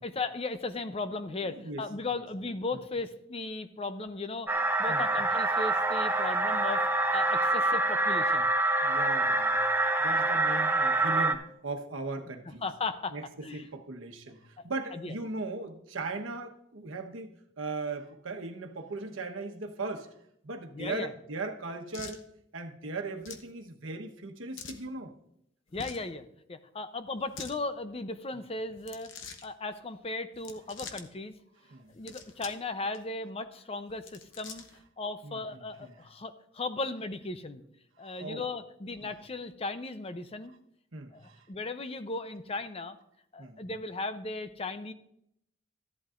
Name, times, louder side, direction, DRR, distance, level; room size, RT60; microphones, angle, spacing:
voice 1, 0.0-4.5 4.8-6.8 7.1-8.5 12.6-13.2 13.4-13.7 14.6-14.7 14.9-15.1 20.7-21.1 25.7-29.1 29.4-31.3 31.9-34.7 35.0-37.6 38.0-40.5 41.1-43.0 43.3-44.9, left 3 dB, 30° left, 11 dB, 0.6 m, -36 dB
voice 2, 1.4-1.8 2.7-2.8 4.8-5.1 8.8-9.7 10.0-12.7 13.1-17.3 17.6-20.1 20.4-22.2 22.5-25.1 31.7-31.9 35.2-36.0 38.0-38.4 39.0-39.1 40.9-41.5 43.4-43.6, right 3 dB, 90° right, 4 dB, 1.1 m, -38 dB
sound 1, 4.5-11.3, right 2 dB, 10° right, 0.6 m, -26 dB
sound 2, 21.9-22.2 23.2-23.5 24.6-24.8 25.7-26.1 27.2-27.6 28.8-29.5 30.3-31.1 31.9-32.6 32.9-33.0 33.9-34.8, left 6 dB, 70° left, 0.8 m, -45 dB
14.0 x 11.0 x 2.5 m, 0.74 s
head